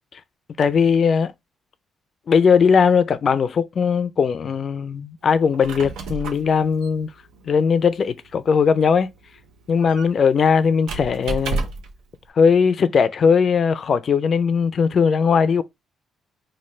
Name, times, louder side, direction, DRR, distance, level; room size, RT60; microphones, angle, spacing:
voice 1, 0.6-1.3 2.3-7.1 7.5-9.1 9.7-11.6 12.4-15.6, left 6 dB, 50° left, 0.4 m, -19 dB
Squeak, 5.4-12.0, right 4 dB, 85° right, 0.6 m, -33 dB
3.1 x 2.2 x 4.3 m
cardioid pair, 90°, 0 cm